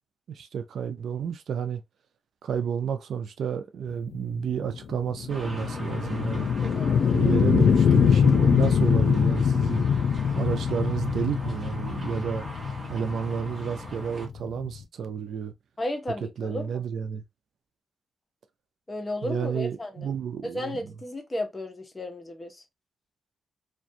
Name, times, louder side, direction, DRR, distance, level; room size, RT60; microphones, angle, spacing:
voice 1, 0.3-1.8 2.4-6.5 7.1-9.9 10.3-12.4 12.9-15.5 16.4-17.2 19.2-20.9, right 7 dB, 70° right, 0.4 m, -30 dB
sound 1, 4.1-14.8, left 7 dB, 70° left, 0.4 m, -23 dB
sound 2, 5.3-14.3, right 1 dB, 25° right, 1.0 m, -41 dB
voice 2, 6.6-7.0 15.8-16.8 18.9-20.1 20.4-22.6, left 1 dB, 20° left, 0.7 m, -34 dB
2.5 x 2.2 x 2.6 m
wide cardioid pair, 130°, 0 cm